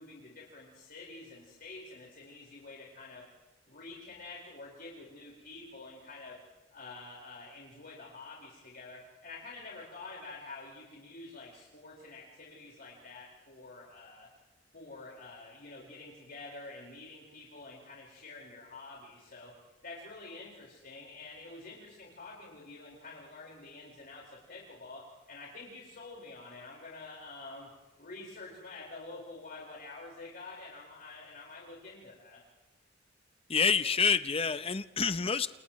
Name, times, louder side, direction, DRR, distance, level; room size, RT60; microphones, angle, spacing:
voice 1, 0.0-3.2 3.7-6.4 6.7-14.3 14.7-19.5 19.8-27.7 28.0-32.4, left 3 dB, 50° left, -4 dB, 5.0 m, -48 dB
voice 2, 33.5-35.5, left 5 dB, 30° left, 11 dB, 0.8 m, -27 dB
30.0 x 29.0 x 3.2 m, 1.1 s
head